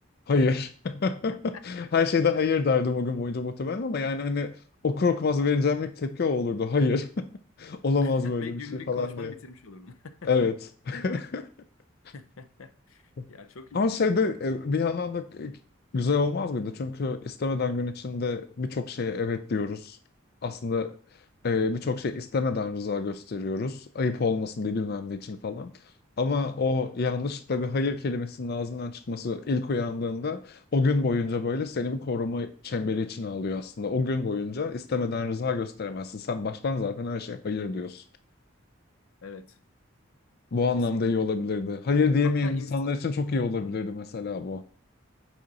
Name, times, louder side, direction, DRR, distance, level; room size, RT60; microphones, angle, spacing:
voice 1, 0.3-7.3 7.6-8.6 8.9-9.3 10.2-10.5 10.9-11.5 13.2-13.3 13.7-15.6 15.9-20.0 20.4-21.0 21.4-25.7 26.2-38.0 40.5-44.6, left 4 dB, 50° left, 0.4 m, -27 dB
voice 2, 8.0-10.3 12.1-13.0 13.3-14.3 39.2-39.6 40.9-41.2 42.2-42.8, left 4 dB, 90° left, 0.6 m, -44 dB
7.7 x 5.0 x 4.1 m
head